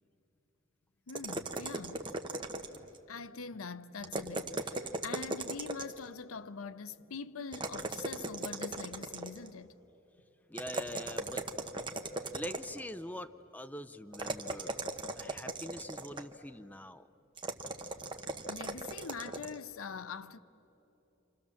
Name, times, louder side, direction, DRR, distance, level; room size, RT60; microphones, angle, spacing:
voice 1, 1.1-2.0 3.1-9.7 12.1-12.3 18.5-20.4, left 5 dB, 75° left, 0.7 m, -44 dB
sound 1, 1.1-3.0 4.0-6.1 7.5-9.5 10.6-12.9 14.1-16.4 17.4-19.6, right 2 dB, 25° right, 1.1 m, -38 dB
voice 2, 10.5-11.5 12.3-14.8 15.2-17.1, left 1 dB, 10° left, 0.5 m, -44 dB
29.5 x 26.5 x 7.2 m
head